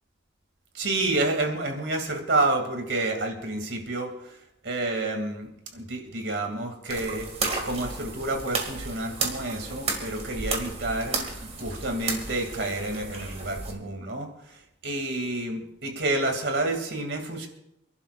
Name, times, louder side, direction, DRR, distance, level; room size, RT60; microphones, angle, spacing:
voice 1, 0.7-4.4 4.6-11.2 11.6-14.6 14.8-17.5, right 2 dB, 70° right, 4 dB, 2.6 m, -29 dB
sound 1, 6.9-13.7, right 3 dB, 35° right, 2.1 m, -33 dB
28.5 x 11.5 x 2.5 m, 0.80 s
head